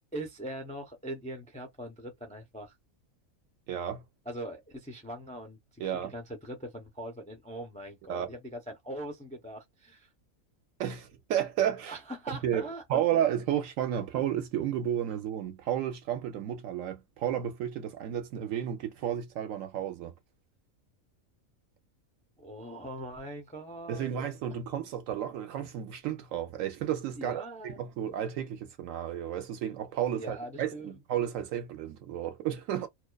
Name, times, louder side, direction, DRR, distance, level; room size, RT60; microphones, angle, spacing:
voice 1, 0.1-2.7 4.3-5.8 6.1-10.1 11.9-13.3 22.4-24.2 27.1-27.8 30.1-30.9, right 1 dB, 10° left, 0.3 m, -41 dB
voice 2, 3.7-4.0 5.8-6.1 8.1-8.3 10.8-12.0 12.4-20.1 23.9-32.9, right 10 dB, 75° right, 0.9 m, -32 dB
2.4 x 2.3 x 2.2 m
omnidirectional pair, 1.5 m